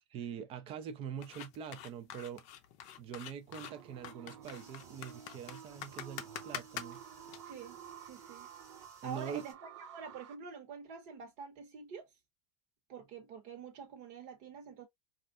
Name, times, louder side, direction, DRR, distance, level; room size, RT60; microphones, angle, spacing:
voice 1, 0.1-2.4 3.0-7.0 9.0-9.5, right 8 dB, 35° right, 0.6 m, -43 dB
sound 1, 1.2-7.4, left 10 dB, 50° left, 0.5 m, -45 dB
sound 2, 3.5-10.4, right 9 dB, 80° right, 0.6 m, -52 dB
sound 3, 4.4-9.5, right 2 dB, 20° right, 1.0 m, -62 dB
voice 2, 7.4-7.8 8.0-8.5 9.0-12.1 12.9-14.9, right 6 dB, 55° right, 1.1 m, -47 dB
3.2 x 2.5 x 2.4 m
supercardioid pair, 140°, 16 cm